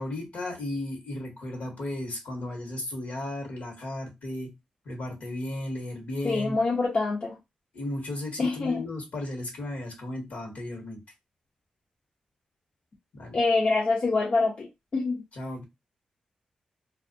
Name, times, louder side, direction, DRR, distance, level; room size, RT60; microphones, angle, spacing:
voice 1, 0.0-4.5 4.8-6.6 7.7-11.0 13.1-13.4 15.3-15.6, left 1 dB, 75° left, 1.1 m, -35 dB
voice 2, 6.2-7.4 8.4-8.8 13.3-15.2, left 3 dB, 55° left, 0.6 m, -25 dB
2.3 x 2.1 x 2.5 m
supercardioid pair, 45°, 3 cm